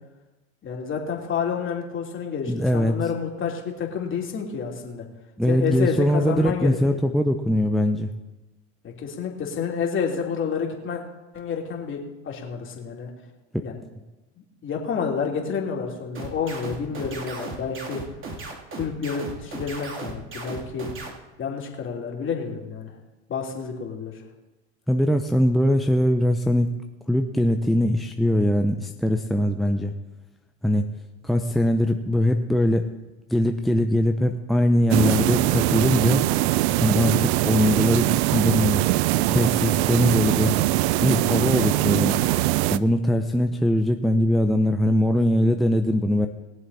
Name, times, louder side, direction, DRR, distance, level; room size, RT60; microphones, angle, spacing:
voice 1, 0.6-5.0 5.5-7.0 8.8-11.0 11.3-12.0 12.2-13.1 13.6-13.8 14.6-18.0 18.7-20.9 21.4-22.9 23.3-24.1, left 6 dB, 35° left, 0 dB, 3.3 m, -29 dB
voice 2, 2.5-3.0 5.4-8.1 13.5-13.6 24.9-26.7 27.1-29.9 30.6-30.8 31.2-32.9 33.3-36.2 36.8-38.8 39.3-40.6 41.0-42.2 42.7-46.3, left 1 dB, ahead, 4 dB, 0.8 m, -21 dB
sound 1, 16.1-21.1, right 3 dB, 35° right, 3.0 m, -35 dB
sound 2, 34.9-42.8, right 17 dB, 65° right, 0.6 m, -22 dB
21.5 x 7.5 x 4.3 m, 1.1 s
hypercardioid pair, 90°, 35 cm